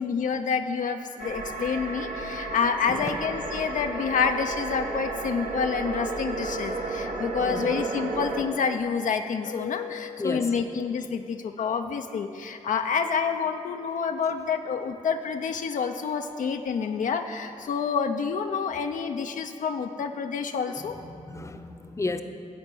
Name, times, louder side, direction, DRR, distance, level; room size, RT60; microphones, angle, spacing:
voice 1, 0.0-21.0, left 6 dB, 70° left, 6 dB, 0.5 m, -28 dB
sound 1, 1.2-8.4, right 3 dB, 65° right, 1.2 m, -32 dB
voice 2, 7.4-7.7 10.2-10.5 21.1-22.2, left 2 dB, 20° left, 7 dB, 0.7 m, -33 dB
13.0 x 4.4 x 8.2 m, 2.6 s
cardioid pair, 65°, 14 cm